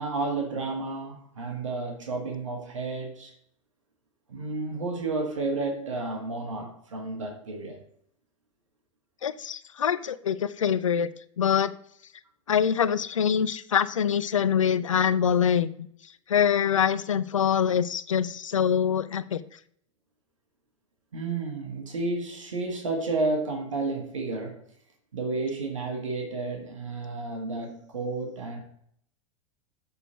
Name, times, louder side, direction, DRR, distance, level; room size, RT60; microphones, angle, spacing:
voice 1, 0.0-3.3 4.3-7.8 21.1-24.6 25.1-28.6, right 3 dB, 75° right, 1 dB, 1.6 m, -31 dB
voice 2, 9.2-11.1 11.4-11.7 12.5-15.7 16.3-19.4, left 8 dB, 80° left, 14 dB, 0.5 m, -24 dB
6.9 x 4.1 x 6.2 m, 0.66 s
figure-of-eight pair, 90°, 16 cm